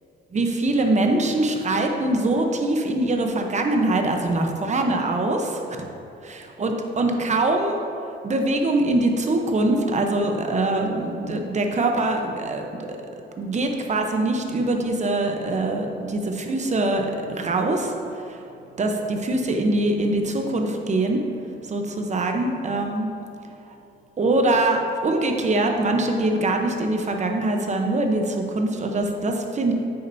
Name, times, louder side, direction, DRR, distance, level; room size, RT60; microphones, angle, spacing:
voice 1, 0.3-5.6 6.2-7.8 8.2-12.6 13.4-17.9 18.2-18.4 18.8-21.2 21.6-23.1 24.2-29.7, right 2 dB, 35° right, 3 dB, 0.9 m, -23 dB
8.6 x 6.6 x 2.7 m, 2.9 s
cardioid pair, 90°, 20 cm